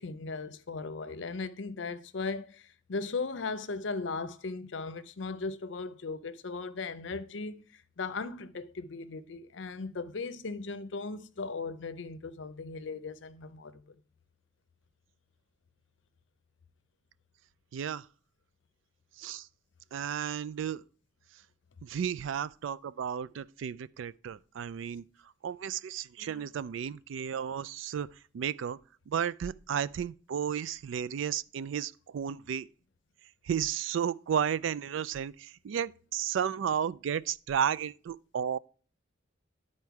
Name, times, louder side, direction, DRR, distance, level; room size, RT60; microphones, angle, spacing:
voice 1, 0.0-13.9 26.2-26.4, left 4 dB, 65° left, 0.6 m, -37 dB
voice 2, 17.7-18.1 19.2-19.5 19.9-20.8 21.8-25.0 25.4-28.1 28.3-28.8 29.1-32.7 33.4-38.6, right 8 dB, 70° right, 0.3 m, -33 dB
11.0 x 4.3 x 4.7 m
head